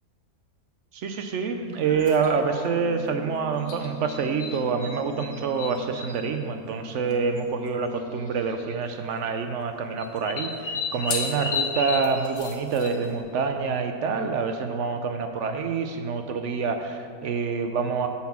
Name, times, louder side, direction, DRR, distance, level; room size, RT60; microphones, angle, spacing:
voice 1, 0.9-18.1, right 5 dB, 65° right, 6 dB, 0.8 m, -27 dB
sound 1, 1.8-8.5, left 2 dB, 75° left, 1.0 m, -43 dB
sound 2, 2.0-2.3 3.7-4.9 5.2-6.2 7.1-7.2 7.4-7.5 8.4-8.7 10.0-13.2, left 4 dB, 55° left, 1.2 m, -32 dB
8.4 x 4.1 x 7.1 m, 2.5 s
omnidirectional pair, 1.6 m